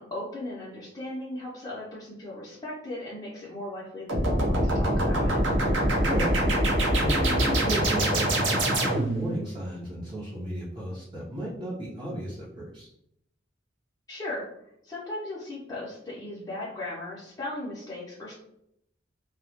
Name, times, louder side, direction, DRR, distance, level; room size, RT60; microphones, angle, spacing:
voice 1, 0.0-5.4 14.1-14.5 14.8-18.3, left 1 dB, 20° left, -9 dB, 0.5 m, -37 dB
sound 1, 4.1-9.3, right 1 dB, 80° right, 0.6 m, -24 dB
voice 2, 7.0-12.9, right 1 dB, 25° right, -8 dB, 0.6 m, -34 dB
2.2 x 2.0 x 2.7 m, 0.76 s
head